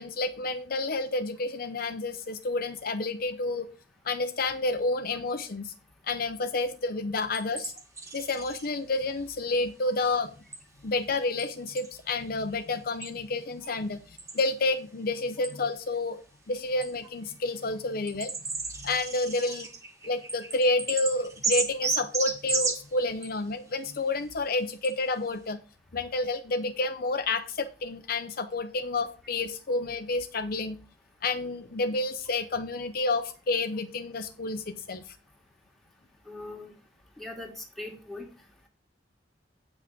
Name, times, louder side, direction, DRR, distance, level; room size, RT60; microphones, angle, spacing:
voice 1, 0.0-3.7 4.0-5.7 6.1-7.7 8.1-10.3 10.8-16.2 16.5-18.3 18.8-19.7 20.0-25.6 25.9-30.8 31.2-35.2, left 2 dB, 55° left, 8 dB, 0.7 m, -30 dB
sound 1, 7.3-8.7 10.5-10.6 11.4-11.9 13.0-13.1 13.6-13.7 14.2-14.5 15.4-15.5 16.8-16.9 17.5-17.6 18.1-23.4 24.4-24.5 24.8-24.9, right 4 dB, 20° right, 1.5 m, -33 dB
voice 2, 36.3-36.7 37.2-38.3, left 2 dB, ahead, 0 dB, 2.2 m, -40 dB
9.1 x 5.9 x 5.1 m, 0.34 s
head